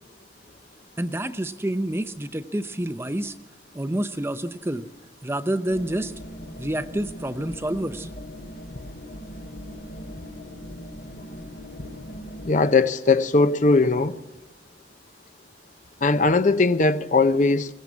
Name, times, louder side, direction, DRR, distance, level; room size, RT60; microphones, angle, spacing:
voice 1, 1.0-3.3 3.7-4.9 5.2-6.1 6.6-8.1, right 1 dB, 15° right, 0.7 m, -28 dB
sound 1, 5.7-12.5, equal, 70° left, 2.4 m, -40 dB
voice 2, 12.4-14.2 16.0-17.7, left 3 dB, 45° left, 0.7 m, -19 dB
22.5 x 17.5 x 8.4 m
head